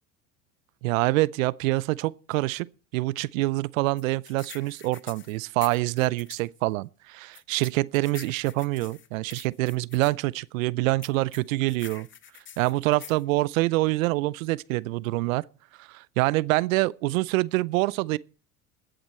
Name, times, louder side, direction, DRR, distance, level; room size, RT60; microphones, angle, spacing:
voice 1, 0.8-2.7 2.9-12.1 12.6-15.4 15.9-18.2, right 20 dB, 90° right, 0.5 m, -26 dB
sound 1, 4.0-6.5 7.3-10.1 11.0-13.2, left 8 dB, 30° left, 1.1 m, -46 dB
20.5 x 7.9 x 4.3 m
supercardioid pair, 95°, 39 cm